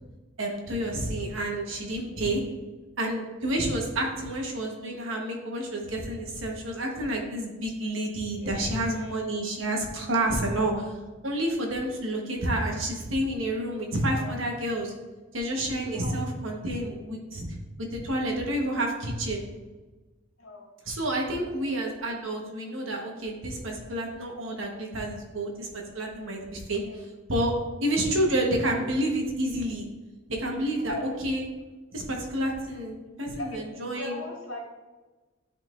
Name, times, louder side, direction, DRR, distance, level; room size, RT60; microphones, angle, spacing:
voice 1, 0.4-2.4 3.0-11.0 11.2-14.9 15.3-17.5 17.8-19.4 20.8-27.5 27.8-29.8 30.3-30.9 31.2-31.5 31.9-34.2, right 1 dB, 70° right, 0 dB, 1.3 m, -29 dB
voice 2, 8.3-9.2 14.1-14.3 15.9-16.2 16.9-17.0 20.4-20.7 21.6-21.7 26.8-27.1 30.8-31.1 33.4-34.6, left 2 dB, 90° left, -2 dB, 1.9 m, -40 dB
10.5 x 3.9 x 2.6 m, 1.2 s
head